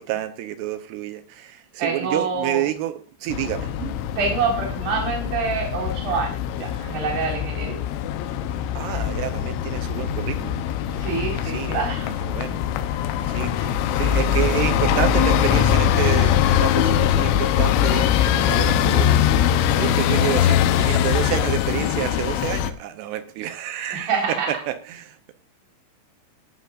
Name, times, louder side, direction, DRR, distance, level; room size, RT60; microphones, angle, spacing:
voice 1, 0.0-3.9 8.8-10.6 11.4-11.7 12.2-12.6 13.3-13.7 13.9-19.1 19.4-25.3, right 13 dB, 80° right, 2.5 m, -29 dB
voice 2, 1.8-2.7 4.2-7.8 11.0-12.2 13.6-13.7 23.9-24.5, right 5 dB, 50° right, 5.9 m, -26 dB
sound 1, 3.3-22.7, left 10 dB, 80° left, 3.0 m, -22 dB
18.5 x 12.0 x 2.5 m
omnidirectional pair, 5.7 m